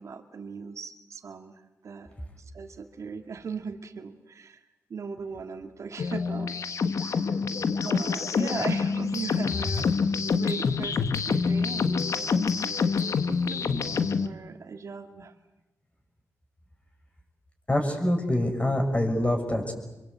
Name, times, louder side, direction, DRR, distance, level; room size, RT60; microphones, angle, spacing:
voice 1, 0.0-1.6 1.8-2.1 2.5-4.6 4.9-6.5 7.0-7.2 7.7-9.9 10.4-13.0 13.2-15.3, right 5 dB, 65° right, 6 dB, 2.2 m, -38 dB
sound 1, 6.0-14.3, left 5 dB, 65° left, 1.3 m, -26 dB
voice 2, 17.7-19.7, left 1 dB, 20° left, 3 dB, 6.7 m, -25 dB
25.0 x 23.5 x 8.2 m, 1.0 s
cardioid pair, 65°, 6 cm